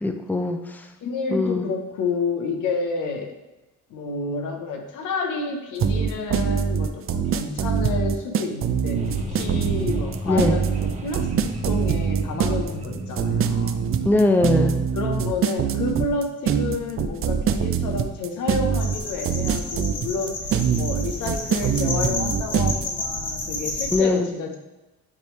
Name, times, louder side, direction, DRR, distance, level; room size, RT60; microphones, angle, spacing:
voice 1, 0.0-0.9 1.3-1.7 10.3-10.6 14.0-14.8 23.9-24.3, left 2 dB, 5° left, 5 dB, 0.5 m, -21 dB
voice 2, 1.0-3.3 3.9-13.8 14.9-20.4 20.7-24.6, left 4 dB, 90° left, 3 dB, 1.0 m, -30 dB
sound 1, 5.8-22.8, right 7 dB, 45° right, 0.5 m, -23 dB
sound 2, 8.9-15.2, right 1 dB, 25° right, 0.9 m, -34 dB
sound 3, 18.8-24.0, left 2 dB, 55° left, 1.6 m, -31 dB
9.5 x 3.3 x 3.2 m, 1.0 s
cardioid pair, 90°, 30 cm